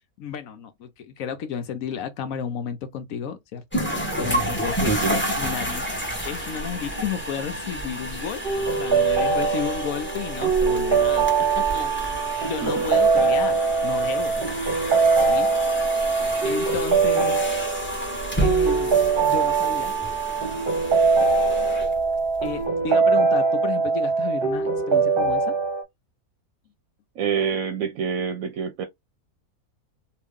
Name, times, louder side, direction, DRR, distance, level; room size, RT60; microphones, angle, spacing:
voice 1, 0.2-5.9 6.2-11.9 12.4-14.6 15.1-15.5 15.9-16.1 16.4-17.5 18.4-19.0 19.2-19.9 22.4-25.6, left 7 dB, 70° left, 1.0 m, -33 dB
sound 1, 3.7-22.6, equal, 10° left, 0.9 m, -30 dB
voice 2, 4.9-5.2 12.6-12.9 27.2-28.9, right 7 dB, 75° right, 1.0 m, -26 dB
sound 2, 8.4-25.8, right 4 dB, 45° right, 0.9 m, -22 dB
2.9 x 2.5 x 3.5 m
omnidirectional pair, 1.6 m